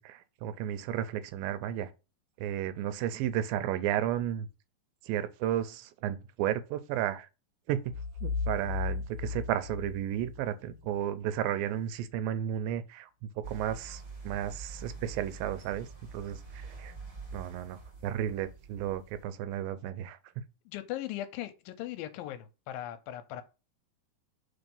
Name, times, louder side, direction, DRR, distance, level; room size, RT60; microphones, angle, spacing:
voice 1, 0.0-1.9 2.4-4.5 5.1-7.3 7.7-7.9 8.2-13.1 13.4-16.9 17.3-20.4, right 11 dB, 90° right, 2.4 m, -33 dB
sound 1, 7.9-10.8, left 4 dB, 55° left, 1.7 m, -35 dB
sound 2, 13.4-19.2, right 4 dB, 35° right, 1.7 m, -45 dB
voice 2, 20.7-23.4, left 13 dB, 85° left, 2.4 m, -39 dB
4.8 x 3.9 x 5.3 m
omnidirectional pair, 4.1 m